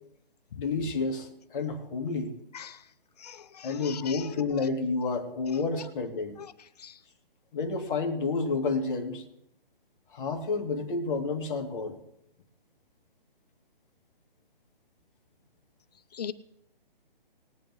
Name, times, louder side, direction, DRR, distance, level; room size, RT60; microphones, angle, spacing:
voice 1, 0.5-2.3 3.6-6.4 7.5-9.2 10.1-12.0, left 4 dB, 5° left, -11 dB, 0.4 m, -30 dB
voice 2, 3.2-4.3 6.8-6.9 16.1-16.3, left 8 dB, 45° left, 11 dB, 0.8 m, -40 dB
20.0 x 9.0 x 3.1 m, 0.77 s
hypercardioid pair, 160°, 29 cm